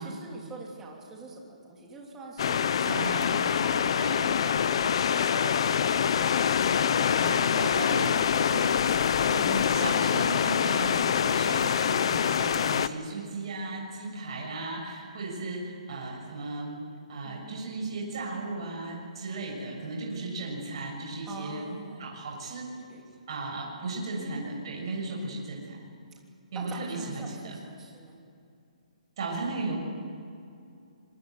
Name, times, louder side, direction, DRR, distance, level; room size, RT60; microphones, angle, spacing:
voice 1, 0.0-2.9 3.6-6.2 6.8-8.6 17.2-17.7 21.3-22.1 22.9-23.2 24.1-24.6 26.5-28.2, right 3 dB, 10° right, -2 dB, 3.3 m, -44 dB
sound 1, 2.4-12.9, left 8 dB, 45° left, 0.8 m, -25 dB
voice 2, 2.8-3.6 4.0-4.3 7.2-8.8 9.3-16.8 17.1-22.7 23.3-25.8 26.5-27.6 29.2-29.8, right 2 dB, 40° right, -2 dB, 7.0 m, -36 dB
26.0 x 23.5 x 8.4 m, 2.5 s
hypercardioid pair, 170°, 4 cm